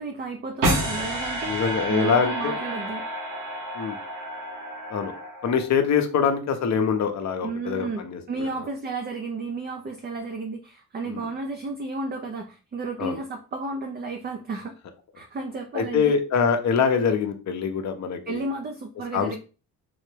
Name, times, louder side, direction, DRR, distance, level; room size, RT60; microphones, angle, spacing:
voice 1, 0.0-3.0 7.4-14.7 15.2-16.1 18.3-19.4, right 3 dB, 30° right, 4 dB, 0.4 m, -33 dB
sound 1, 0.6-5.8, right 1 dB, 60° right, 1.3 m, -30 dB
voice 2, 1.5-2.5 3.7-4.0 4.9-5.1 5.4-8.2 11.1-11.2 13.0-13.2 15.7-18.4 19.1-19.4, left 6 dB, 50° left, 5 dB, 0.7 m, -24 dB
3.8 x 2.1 x 3.2 m, 0.34 s
cardioid pair, 90°, 36 cm